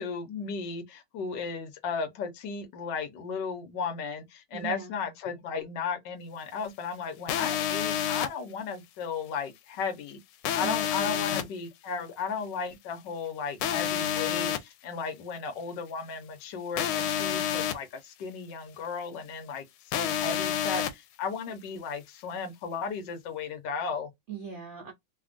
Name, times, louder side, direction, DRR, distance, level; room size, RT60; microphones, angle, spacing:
voice 1, 0.0-10.2 10.5-24.1, left 5 dB, 65° left, 1.4 m, -35 dB
voice 2, 4.5-5.0 10.6-11.5 24.3-24.9, right 7 dB, 90° right, 0.6 m, -40 dB
sound 1, 7.3-8.3 10.4-11.4 13.6-14.6 16.8-17.7 19.9-20.9, left 10 dB, 85° left, 1.4 m, -28 dB
3.3 x 2.4 x 2.4 m
omnidirectional pair, 2.2 m